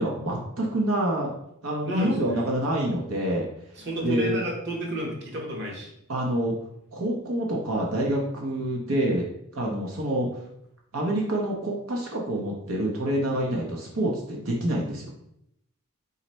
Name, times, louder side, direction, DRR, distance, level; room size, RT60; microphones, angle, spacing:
voice 1, 0.0-1.3 1.6-3.5 4.0-4.4 6.1-6.5 6.9-9.2 9.5-10.3 10.9-15.1, right 1 dB, 85° right, -1 dB, 0.8 m, -27 dB
voice 2, 1.8-2.5 3.8-5.9, right 1 dB, 55° right, -1 dB, 1.1 m, -31 dB
4.1 x 4.0 x 3.1 m, 0.76 s
head